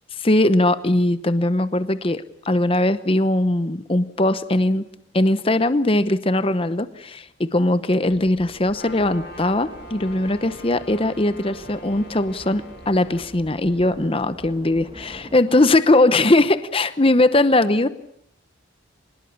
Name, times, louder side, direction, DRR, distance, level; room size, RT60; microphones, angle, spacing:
voice 1, 0.2-4.8 5.1-17.9, left 1 dB, 25° left, 12 dB, 0.8 m, -20 dB
sound 1, 8.1-15.4, equal, 20° right, 1.6 m, -44 dB
Trumpet, 8.7-13.2, equal, 50° left, 3.2 m, -43 dB
24.0 x 20.5 x 7.1 m, 0.68 s
head